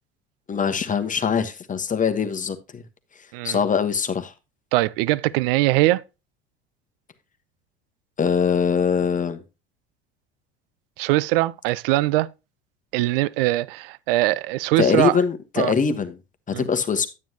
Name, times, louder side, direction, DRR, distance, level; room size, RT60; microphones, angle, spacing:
voice 1, 0.5-2.8 3.4-4.3 8.2-9.4 14.8-16.2 16.6-17.1, left 6 dB, 25° left, 1.3 m, -22 dB
voice 2, 4.7-6.0 11.0-12.3 12.9-15.2 15.6-15.7 16.5-16.6, right 18 dB, 70° right, 0.6 m, -21 dB
9.6 x 9.2 x 2.8 m
hypercardioid pair, 75°, 30 cm